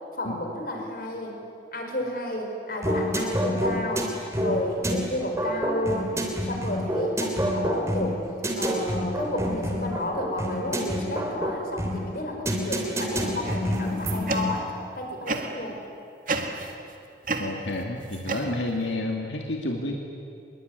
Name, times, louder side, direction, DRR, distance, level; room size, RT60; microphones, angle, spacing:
voice 1, 0.2-1.3 1.7-4.1 4.4-6.1 6.5-8.2 8.6-14.7 15.0-15.8, left 1 dB, 50° left, 2 dB, 5.0 m, -31 dB
sound 1, 2.8-14.6, equal, 15° right, 3.1 m, -28 dB
sound 2, 13.4-14.8 15.3-15.7 16.3-16.9 17.2-18.9, right 3 dB, 45° right, 1.9 m, -32 dB
voice 2, 17.4-19.9, left 2 dB, 90° left, 1 dB, 2.5 m, -30 dB
25.0 x 22.0 x 9.6 m, 2.4 s
head